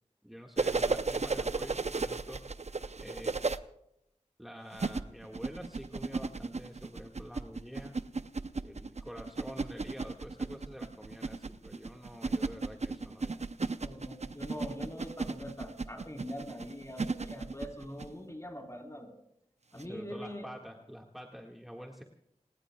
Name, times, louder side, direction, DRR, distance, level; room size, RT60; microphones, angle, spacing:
voice 1, 0.2-2.4 3.0-3.4 4.4-8.0 8.6-13.4 19.8-22.0, equal, ahead, 0 dB, 1.8 m, -47 dB
sound 1, 0.6-3.6 4.7-18.1 19.8-19.9, right 3 dB, 60° right, 0.7 m, -34 dB
voice 2, 13.8-19.1 19.7-20.5, equal, 25° left, 2 dB, 4.4 m, -43 dB
28.0 x 20.0 x 2.3 m, 0.79 s
wide cardioid pair, 40°, 13 cm